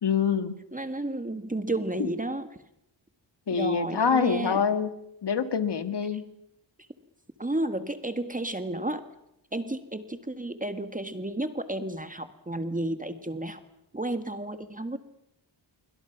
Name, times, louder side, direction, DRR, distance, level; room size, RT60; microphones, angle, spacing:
voice 1, 0.0-0.6 3.5-4.9 5.2-6.2, left 6 dB, 60° left, 10 dB, 2.0 m, -25 dB
voice 2, 0.7-2.5 3.5-4.7 7.4-9.0 9.5-13.6 13.9-15.0, right 1 dB, 20° right, 9 dB, 1.9 m, -32 dB
26.0 x 24.0 x 6.1 m, 0.83 s
cardioid pair, 70°, 45 cm